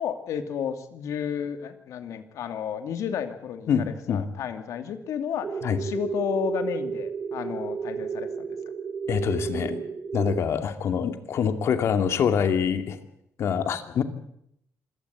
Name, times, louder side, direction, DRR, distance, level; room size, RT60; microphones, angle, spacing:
voice 1, 0.0-5.5 5.8-8.5, left 8 dB, 75° left, 8 dB, 2.6 m, -32 dB
voice 2, 3.7-4.3 5.6-5.8 9.1-9.8 10.1-13.0 13.4-14.0, left 7 dB, 55° left, 9 dB, 2.4 m, -25 dB
sound 1, 5.4-10.4, right 6 dB, 30° right, 1.4 m, -32 dB
26.0 x 17.5 x 8.4 m, 0.75 s
cardioid pair, 150°, 5 cm